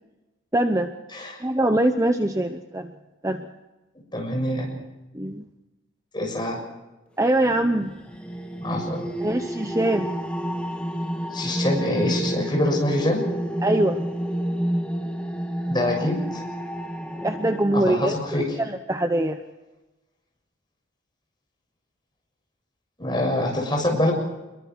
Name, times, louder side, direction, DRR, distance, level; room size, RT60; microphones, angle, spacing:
voice 1, 0.5-0.9 1.4-2.9 3.2-3.5 5.1-5.5 7.2-7.9 9.2-10.1 13.6-14.1 17.2-19.4, right 1 dB, 15° right, 6 dB, 0.9 m, -23 dB
voice 2, 1.1-1.4 4.1-4.7 6.1-6.6 8.6-9.1 11.3-13.2 15.7-16.4 17.7-18.4 23.0-24.1, left 1 dB, 20° left, 0 dB, 6.7 m, -25 dB
sound 1, 7.4-17.6, equal, 5° left, 1.6 m, -30 dB
26.0 x 22.5 x 4.7 m, 1.1 s
head